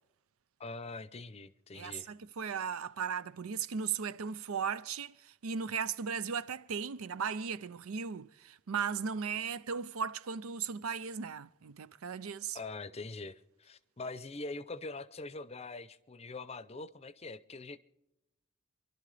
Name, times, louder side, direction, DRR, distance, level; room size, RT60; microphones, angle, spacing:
voice 1, 0.6-2.1 12.5-17.8, left 3 dB, 30° left, 0.6 m, -43 dB
voice 2, 1.7-12.6, right 6 dB, 85° right, 0.6 m, -37 dB
29.0 x 12.0 x 3.3 m
head